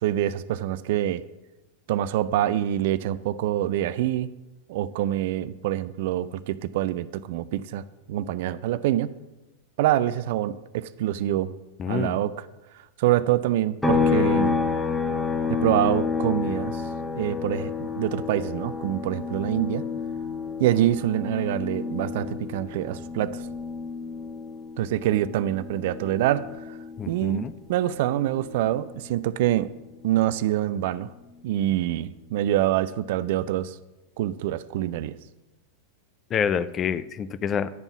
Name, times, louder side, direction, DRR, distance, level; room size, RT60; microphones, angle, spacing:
voice 1, 0.0-1.2 1.9-4.3 4.7-9.1 9.8-11.5 11.9-12.3 13.0-14.6 15.5-16.8 17.1-19.8 20.6-23.4 24.8-26.8 27.1-29.7 30.0-31.1 31.4-33.8 34.2-35.2, right 13 dB, 50° right, 16 dB, 0.4 m, -25 dB
voice 2, 11.8-12.2 27.0-27.5 36.3-37.7, left 7 dB, 25° left, 14 dB, 0.5 m, -27 dB
sound 1, 13.8-27.4 27.7-29.9, left 5 dB, 5° left, 1.2 m, -30 dB
11.0 x 5.3 x 6.9 m, 1.0 s
figure-of-eight pair, 90°, 0 cm